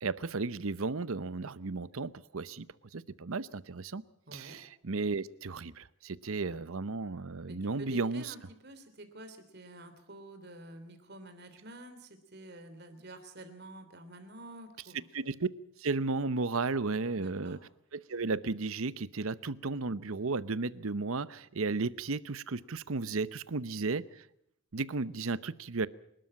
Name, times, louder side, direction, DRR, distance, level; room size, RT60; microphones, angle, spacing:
voice 1, 0.0-2.7 2.9-4.0 4.3-8.3 15.1-15.5 15.8-17.6 17.9-24.2 24.7-25.9, right 3 dB, 70° right, 16 dB, 0.8 m, -34 dB
voice 2, 4.3-4.6 7.5-15.0 17.1-17.6, right 1 dB, 50° right, 8 dB, 3.2 m, -49 dB
26.0 x 13.0 x 8.8 m, 0.79 s
head